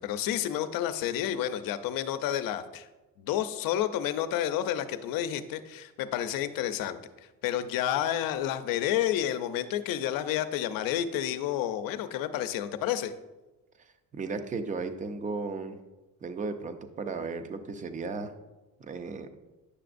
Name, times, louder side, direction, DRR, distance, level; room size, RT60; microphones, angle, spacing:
voice 1, 0.0-2.9 3.2-7.0 7.4-13.1, left 11 dB, 80° left, 11 dB, 0.6 m, -30 dB
voice 2, 13.8-15.8 16.2-18.3 18.8-19.3, right 4 dB, 25° right, 9 dB, 0.5 m, -35 dB
9.8 x 6.8 x 2.5 m, 1.1 s
cardioid pair, 160°, 34 cm